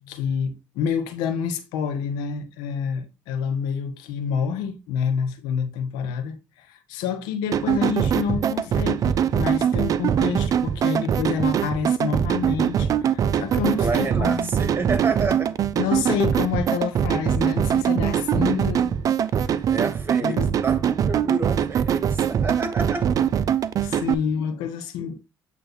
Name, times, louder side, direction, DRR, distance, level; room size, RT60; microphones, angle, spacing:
voice 1, 0.0-14.5 15.8-19.6 20.2-20.5 23.8-25.1, left 7 dB, 80° left, 1.2 m, -28 dB
sound 1, 7.5-24.1, right 8 dB, 55° right, 0.5 m, -22 dB
voice 2, 13.8-15.6 19.7-23.1, right 3 dB, 30° right, 2.2 m, -29 dB
8.4 x 3.2 x 4.1 m
supercardioid pair, 60°, 7 cm